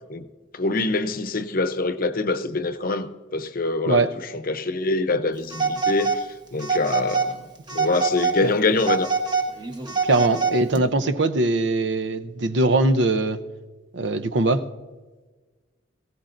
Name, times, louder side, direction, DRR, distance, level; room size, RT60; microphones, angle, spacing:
voice 1, 0.5-4.1 4.5-7.4 7.7-9.1, left 3 dB, 50° left, 0.7 m, -25 dB
Telephone, 5.5-6.2 6.6-7.3 7.7-8.4 8.8-10.8, right 4 dB, 25° right, 1.1 m, -24 dB
voice 2, 10.0-13.4 13.9-14.7, right 2 dB, 70° right, 0.7 m, -21 dB
19.0 x 16.5 x 2.6 m
head